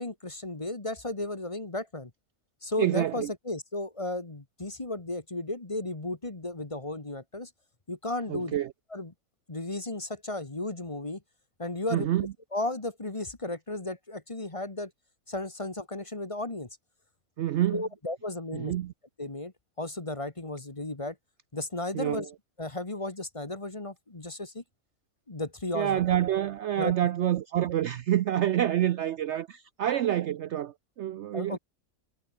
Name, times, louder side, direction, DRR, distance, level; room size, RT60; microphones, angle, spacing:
voice 1, 0.0-2.1 2.6-7.5 7.9-8.5 8.9-9.1 9.5-11.2 11.6-12.1 12.5-14.9 15.3-16.7 17.7-18.7 19.2-19.5 19.8-21.2 21.5-22.3 22.6-24.6 25.3-26.0 26.8-26.9 31.3-31.6, left 2 dB, 25° left, 1.6 m, -34 dB
voice 2, 2.8-3.3 8.3-8.7 11.9-12.3 17.4-17.8 18.5-18.9 21.9-22.2 25.7-31.6, right 12 dB, 65° right, 0.8 m, -27 dB
omnidirectional pair, 1.5 m